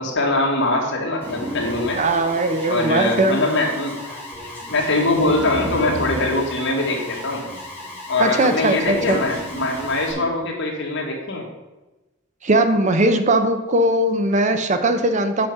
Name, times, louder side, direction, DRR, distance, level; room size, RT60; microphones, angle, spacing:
voice 1, 0.0-2.0 2.7-4.0 4.7-7.4 8.1-11.5, left 2 dB, 60° left, 0 dB, 1.8 m, -22 dB
Alarm, 1.2-10.1, left 1 dB, 10° left, 2.4 m, -36 dB
sound 1, 1.2-2.2 4.6-7.4 8.1-10.5, equal, 20° right, 1.6 m, -34 dB
voice 2, 1.9-3.4 8.2-9.2 12.4-15.5, right 2 dB, 35° right, 8 dB, 0.6 m, -19 dB
8.0 x 5.2 x 5.8 m, 1.1 s
head